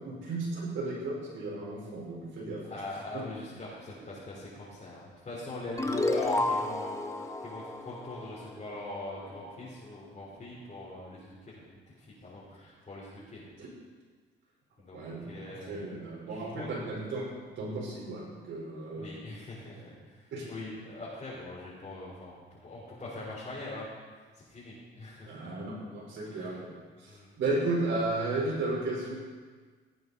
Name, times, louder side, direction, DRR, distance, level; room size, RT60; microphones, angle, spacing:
voice 1, 0.0-2.6 13.6-13.7 14.9-17.3 17.6-19.1 20.3-20.5 25.3-29.1, right 2 dB, 70° right, -5 dB, 4.6 m, -34 dB
voice 2, 2.7-11.6 12.0-13.4 14.8-15.9 16.3-16.7 19.0-23.9 24.5-25.5 26.2-26.6 27.1-27.3, left 2 dB, 35° left, -8 dB, 4.4 m, -42 dB
sound 1, 5.8-9.0, left 2 dB, 15° left, 1.1 m, -31 dB
17.5 x 9.3 x 4.2 m, 1.5 s
cardioid pair, 90°, 20 cm